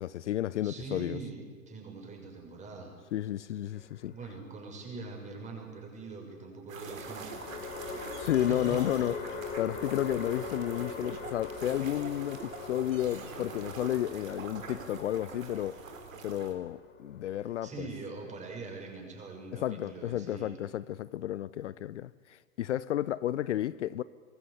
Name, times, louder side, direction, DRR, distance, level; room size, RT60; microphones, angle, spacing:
voice 1, 0.0-1.2 3.1-4.1 8.2-15.8 16.2-17.9 19.5-24.0, left 12 dB, 60° left, 0.7 m, -32 dB
voice 2, 0.6-2.9 4.1-7.5 8.5-8.8 17.6-20.6, right 4 dB, 15° right, 6.2 m, -43 dB
sound 1, 3.7-4.6 6.8-18.2, left 4 dB, 25° left, 3.5 m, -42 dB
sound 2, 6.7-16.5, right 5 dB, 70° right, 3.9 m, -45 dB
23.5 x 20.0 x 8.4 m
hypercardioid pair, 120°, 41 cm